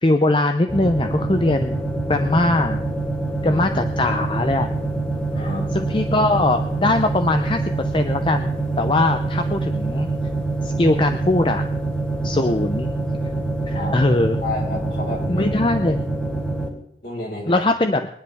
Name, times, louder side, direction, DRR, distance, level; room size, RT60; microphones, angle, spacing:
voice 1, 0.0-1.8 2.1-2.9 3.4-4.7 5.4-8.5 8.8-10.1 10.6-11.6 12.2-13.2 13.7-14.4 15.3-16.0 17.5-18.1, left 2 dB, 25° left, 7 dB, 0.6 m, -21 dB
sound 1, 0.7-16.7, right 2 dB, 10° left, 2.9 m, -25 dB
voice 2, 5.3-5.7 13.7-14.0 14.4-15.6 17.0-17.6, left 2 dB, 55° left, -1 dB, 4.9 m, -31 dB
22.5 x 10.5 x 3.5 m, 0.70 s
head